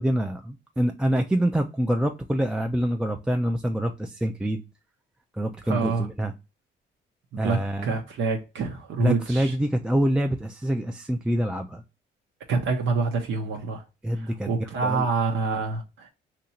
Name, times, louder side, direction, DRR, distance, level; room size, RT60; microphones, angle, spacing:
voice 1, 0.0-4.6 5.3-6.3 7.4-7.9 9.0-11.8 14.0-14.5 14.8-15.1, right 1 dB, 5° right, 0.4 m, -26 dB
voice 2, 5.6-6.1 7.3-9.5 12.5-13.8 14.1-16.1, right 4 dB, 75° right, 0.8 m, -27 dB
2.9 x 2.5 x 4.2 m
cardioid pair, 90°, 20 cm